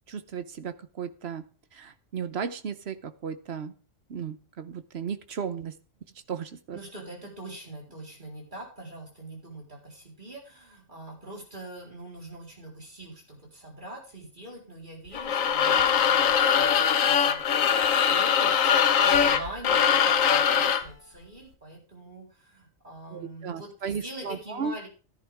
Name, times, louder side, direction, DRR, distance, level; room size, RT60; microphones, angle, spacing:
voice 1, 0.1-1.5 1.7-3.7 4.1-5.8 6.3-6.8 23.1-24.7, right 6 dB, 55° right, 11 dB, 1.1 m, -35 dB
voice 2, 6.7-24.9, right 1 dB, 35° right, -2 dB, 4.2 m, -43 dB
sound 1, 15.1-20.9, left 7 dB, 85° left, 1.3 m, -22 dB
14.0 x 10.5 x 3.5 m, 0.36 s
omnidirectional pair, 1.4 m